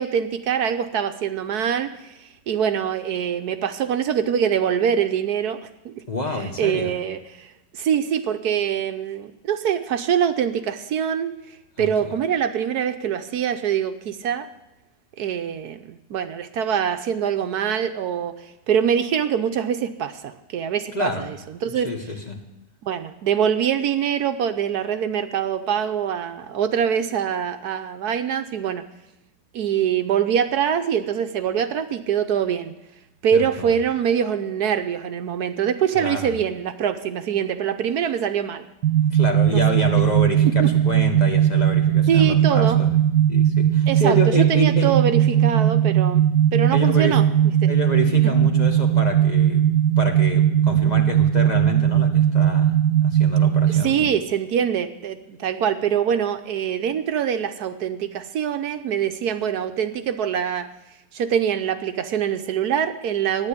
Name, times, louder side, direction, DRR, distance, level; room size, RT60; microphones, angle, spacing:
voice 1, 0.0-1.9 2.5-5.6 5.8-5.9 6.4-7.5 7.7-11.3 11.8-14.5 15.2-18.3 18.7-21.9 22.8-28.8 29.5-32.7 33.2-38.7 39.5-39.6 40.4-40.7 42.1-42.8 43.9-44.2 44.5-47.2 47.6-47.7 53.7-60.7 61.1-63.5, right 8 dB, 70° right, 9 dB, 1.2 m, -24 dB
voice 2, 6.1-6.9 11.8-12.1 20.9-21.3 21.7-22.4 33.3-33.8 35.9-36.3 39.1-43.0 43.3-45.0 46.7-47.2 47.7-49.7 50.0-54.1, left 1 dB, 25° left, 1 dB, 1.4 m, -28 dB
sound 1, 38.8-53.8, right 10 dB, 85° right, 1.3 m, -18 dB
13.0 x 9.9 x 8.3 m, 0.94 s
omnidirectional pair, 1.8 m